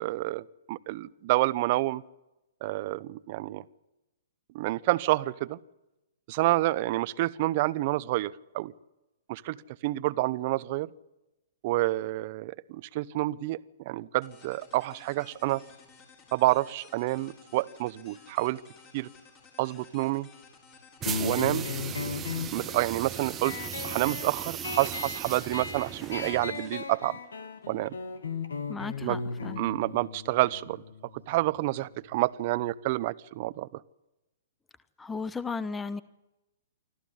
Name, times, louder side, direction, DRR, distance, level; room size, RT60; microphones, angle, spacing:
voice 1, 0.0-2.0 2.6-3.6 4.5-5.6 6.3-8.7 9.3-9.6 9.8-10.9 11.6-13.6 13.9-15.6 16.3-18.6 18.9-19.1 19.6-20.3 21.2-21.7 22.5-23.6 23.8-27.2 27.7-28.0 29.0-29.2 29.6-30.8 31.3-33.7, right 18 dB, 45° right, 18 dB, 0.8 m, -28 dB
sound 1, 14.2-27.9, left 5 dB, 30° left, 6.7 m, -55 dB
sound 2, 21.0-32.2, left 4 dB, 75° left, 2.4 m, -37 dB
sound 3, 21.0-26.6, right 9 dB, 20° right, 1.3 m, -37 dB
voice 2, 28.7-29.6 35.0-36.0, left 4 dB, 10° left, 17 dB, 0.9 m, -35 dB
25.5 x 14.5 x 9.9 m, 0.96 s
figure-of-eight pair, 120°, 0 cm